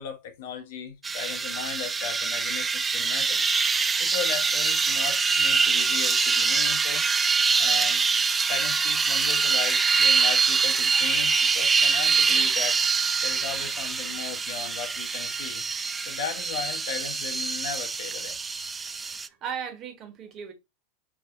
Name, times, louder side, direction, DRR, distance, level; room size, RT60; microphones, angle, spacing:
voice 1, 0.0-3.5 4.0-7.1 7.6-8.0 8.5-12.8 13.2-15.6 16.0-18.4, left 7 dB, 65° left, 1.0 m, -36 dB
sound 1, 1.0-19.3, right 5 dB, 20° right, 0.3 m, -24 dB
voice 2, 18.9-20.5, right 7 dB, 40° right, 1.3 m, -37 dB
4.6 x 2.9 x 2.5 m
hypercardioid pair, 100°, 0 cm